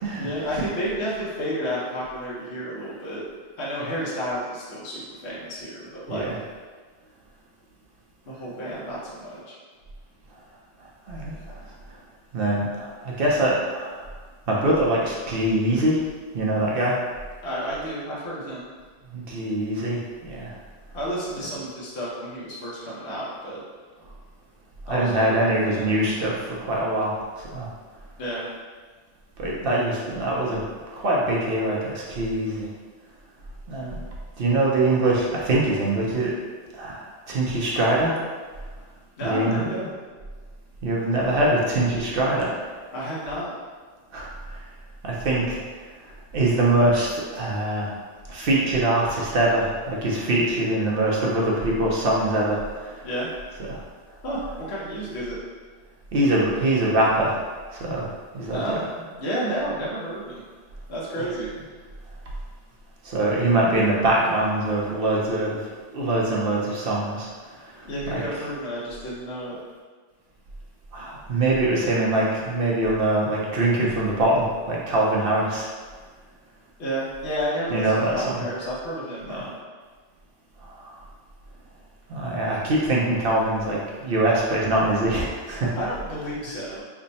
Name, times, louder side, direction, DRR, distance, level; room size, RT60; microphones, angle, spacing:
voice 1, 0.2-3.2 3.6-6.3 8.3-9.6 17.4-18.6 20.9-23.6 24.9-25.9 28.2-28.4 39.2-40.0 42.9-43.5 53.0-53.3 54.2-55.4 58.5-58.8 59.2-60.4 60.9-61.5 67.8-69.6 76.8-79.5 85.7-86.8, equal, 65° left, -7 dB, 1.1 m, -31 dB
voice 2, 11.1-11.6 12.3-14.0 14.5-16.0 16.3-17.0 19.1-20.6 24.9-27.7 29.4-30.6 30.9-32.7 33.7-33.9 34.4-36.4 36.7-38.1 39.2-39.7 40.8-42.5 44.1-44.3 45.0-45.6 46.3-47.9 48.3-53.0 53.7-53.8 56.1-57.4 57.7-58.1 58.3-58.8 63.0-65.6 65.9-67.3 67.6-68.2 70.9-75.7 77.7-78.4 79.3-79.5 80.7-81.0 82.1-85.7, right 1 dB, 55° right, -4 dB, 0.8 m, -23 dB
3.4 x 2.1 x 4.0 m, 1.5 s
omnidirectional pair, 1.2 m